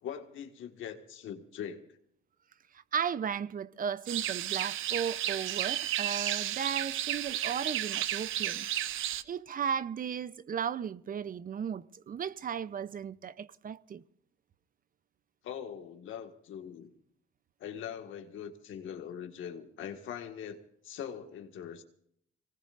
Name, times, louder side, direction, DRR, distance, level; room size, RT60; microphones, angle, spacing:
voice 1, 0.0-1.8 15.4-16.9 17.6-21.8, left 8 dB, 80° left, 1.8 m, -42 dB
voice 2, 2.7-8.7 9.3-14.0, right 7 dB, 45° right, 0.7 m, -35 dB
sound 1, 4.1-9.2, right 12 dB, 80° right, 0.8 m, -33 dB
25.0 x 19.0 x 2.6 m
cardioid pair, 90°, 20 cm